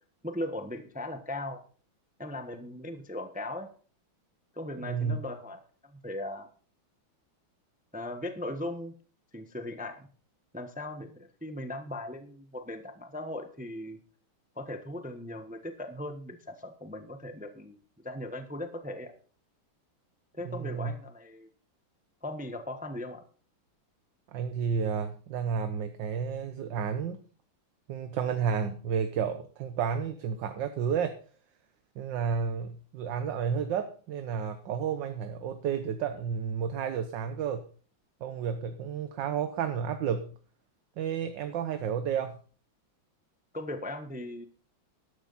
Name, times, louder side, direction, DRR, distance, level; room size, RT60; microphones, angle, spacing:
voice 1, 0.2-1.6 2.2-3.7 4.5-6.5 7.9-8.9 9.3-10.1 10.5-14.0 14.6-17.8 18.0-19.1 20.3-21.5 22.2-23.2 43.5-44.4, left 1 dB, 5° right, 7 dB, 0.8 m, -38 dB
voice 2, 4.8-5.2 20.4-21.0 24.3-27.2 27.9-31.2 32.0-37.6 38.2-40.3 41.0-42.4, right 7 dB, 65° right, 9 dB, 1.5 m, -31 dB
13.0 x 12.0 x 4.1 m, 0.41 s
omnidirectional pair, 2.2 m